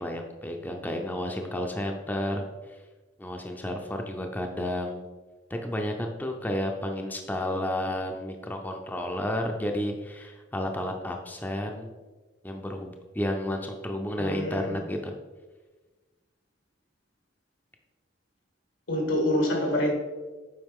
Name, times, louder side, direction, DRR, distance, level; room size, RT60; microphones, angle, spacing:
voice 1, 0.0-2.8 3.2-5.0 5.5-11.9 12.4-15.1, left 1 dB, 10° left, 0.5 m, -31 dB
voice 2, 14.2-14.8 18.9-19.9, left 1 dB, 90° left, 1.9 m, -26 dB
7.9 x 5.0 x 3.6 m
head